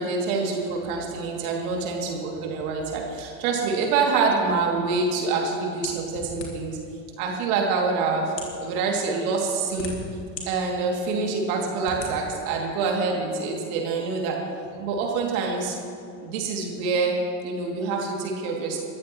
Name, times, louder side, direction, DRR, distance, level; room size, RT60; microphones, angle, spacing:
voice 1, 0.0-6.8 7.2-8.3 8.6-10.0 10.5-14.5 14.8-15.8 16.2-18.8, right 4 dB, 60° right, 0 dB, 2.8 m, -26 dB
sound 1, 5.8-6.8 7.6-7.7 8.3-8.6 9.4-10.5 11.0-11.1 11.8-12.1, left 4 dB, 80° left, 2.6 m, -36 dB
22.0 x 14.0 x 3.1 m, 2.4 s
figure-of-eight pair, 80°, 48 cm